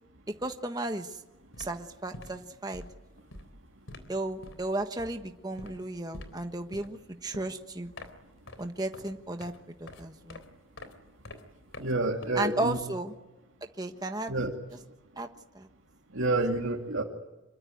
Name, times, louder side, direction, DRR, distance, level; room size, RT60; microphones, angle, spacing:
voice 1, 0.4-1.2 1.6-2.8 4.1-7.9 8.6-9.5 9.8-10.4 12.3-13.1 13.8-14.3 15.2-15.3 15.5-15.7, right 2 dB, 20° right, 6 dB, 1.3 m, -34 dB
sound 1, 0.9-1.1 1.4-12.8, left 1 dB, 80° left, 3.6 m, -48 dB
voice 2, 11.8-12.8 14.3-14.5 16.1-17.0, right 2 dB, 85° right, 0 dB, 2.4 m, -28 dB
26.5 x 23.0 x 9.3 m, 1.1 s
head